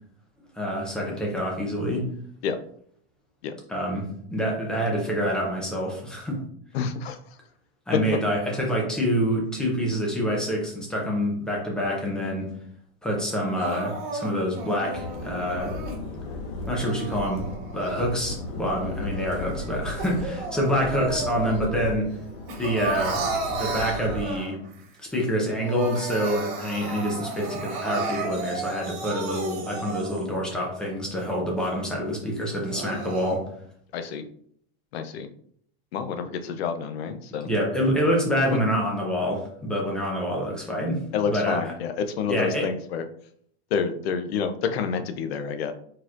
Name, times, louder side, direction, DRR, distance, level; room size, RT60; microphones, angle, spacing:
voice 1, 0.6-2.1 3.7-6.4 7.9-12.5 13.0-15.8 16.7-22.1 22.6-23.2 23.5-24.6 25.0-33.5 37.4-41.6 42.3-42.7, equal, ahead, -2 dB, 0.5 m, -27 dB
voice 2, 6.7-7.2 33.9-34.2 34.9-35.3 35.9-37.5 41.1-43.0 43.7-45.7, left 6 dB, 70° left, 8 dB, 0.6 m, -28 dB
Crying sobbing, 13.6-16.0 16.6-18.4 18.8-21.8 22.1-24.7 25.2-25.3 25.5-30.4 30.9-31.0 31.6-31.7 32.4-33.3, right 3 dB, 55° right, 1.8 m, -34 dB
sound 1, 14.9-24.3, left 2 dB, 35° left, 0.8 m, -36 dB
4.3 x 4.3 x 2.4 m, 0.64 s
supercardioid pair, 175°, 32 cm